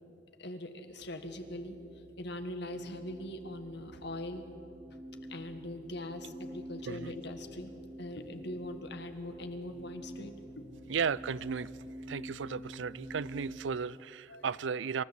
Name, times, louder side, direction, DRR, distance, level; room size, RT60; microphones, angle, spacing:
voice 1, 0.4-1.8 2.2-4.4 5.3-7.7 8.0-10.9 14.3-14.4, left 1 dB, 65° left, 7 dB, 1.8 m, -41 dB
sound 1, 0.9-13.5, equal, ahead, 2.4 m, -48 dB
voice 2, 10.9-11.7 12.1-15.0, right 6 dB, 75° right, 21 dB, 0.5 m, -35 dB
27.0 x 14.5 x 8.2 m, 2.7 s
head